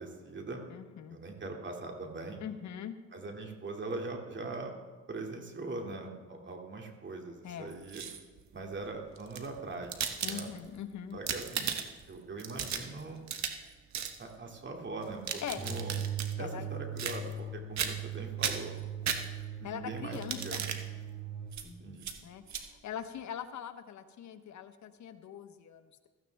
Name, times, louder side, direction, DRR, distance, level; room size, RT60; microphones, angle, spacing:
voice 1, 0.0-0.6 1.1-2.4 3.1-4.7 5.1-8.0 8.5-10.5 11.1-11.7 12.1-13.3 14.2-16.0 16.4-18.7 19.6-20.6 21.6-22.1, right 3 dB, 40° right, 2 dB, 2.4 m, -41 dB
voice 2, 0.7-1.2 2.4-2.9 7.4-7.7 10.2-11.2 15.4-15.6 16.4-16.7 19.6-20.6 22.2-26.1, left 9 dB, 70° left, 9 dB, 1.1 m, -42 dB
sound 1, 7.7-8.4 9.2-10.8 11.1-12.1 12.4-13.7 13.9-14.2 15.0-16.3 17.0-17.5 17.8-18.1 18.4-19.6 20.1-20.8 21.5-21.7 22.0-22.2 22.5-22.6, right 7 dB, 65° right, 1.3 m, -36 dB
sound 2, 15.6-21.5, right 6 dB, 20° right, 5.0 m, -39 dB
16.0 x 14.0 x 3.5 m, 1.3 s
cardioid pair, 90°, 30 cm